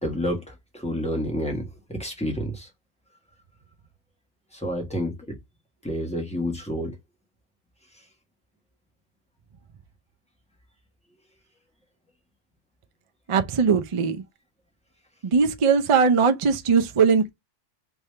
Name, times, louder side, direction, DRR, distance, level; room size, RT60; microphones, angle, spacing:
voice 1, 0.0-2.7 4.5-5.4 5.8-7.0, equal, 5° left, 1.4 m, -29 dB
voice 2, 13.3-14.2 15.2-17.3, right 5 dB, 45° right, 0.4 m, -20 dB
3.5 x 2.9 x 3.2 m
omnidirectional pair, 1.2 m